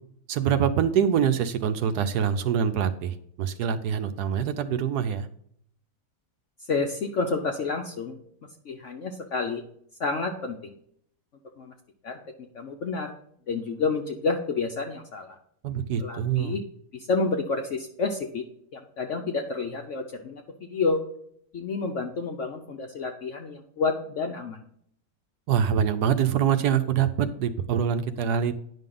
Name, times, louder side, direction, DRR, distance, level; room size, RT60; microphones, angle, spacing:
voice 1, 0.3-5.3 15.6-16.6 25.5-28.5, right 8 dB, 75° right, 10 dB, 1.2 m, -25 dB
voice 2, 6.7-8.2 8.6-9.6 10.0-10.7 11.6-11.7 12.0-12.2 12.5-13.1 13.5-15.4 16.0-16.6 16.9-18.4 18.7-21.0 21.5-24.6, left 4 dB, 60° left, 3 dB, 0.9 m, -29 dB
9.9 x 5.6 x 3.8 m, 0.67 s
omnidirectional pair, 1.8 m